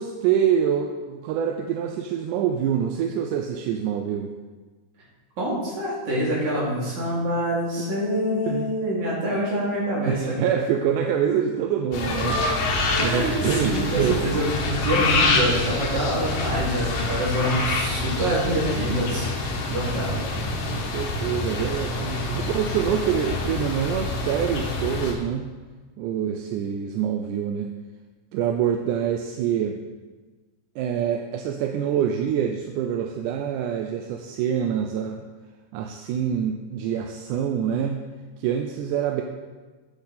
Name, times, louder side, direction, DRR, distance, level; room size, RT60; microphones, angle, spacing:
voice 1, 0.0-4.3 8.4-8.7 10.1-14.2 19.7-19.8 20.7-25.5 26.0-27.7 28.3-29.8 30.8-35.2 35.7-38.0 38.4-39.2, right 8 dB, 80° right, 5 dB, 2.0 m, -26 dB
voice 2, 5.4-10.3 12.9-20.2, equal, 65° right, -7 dB, 4.0 m, -26 dB
sound 1, 11.9-25.1, left 3 dB, 90° left, 2.8 m, -26 dB
8.6 x 8.1 x 4.2 m, 1.3 s
omnidirectional pair, 3.7 m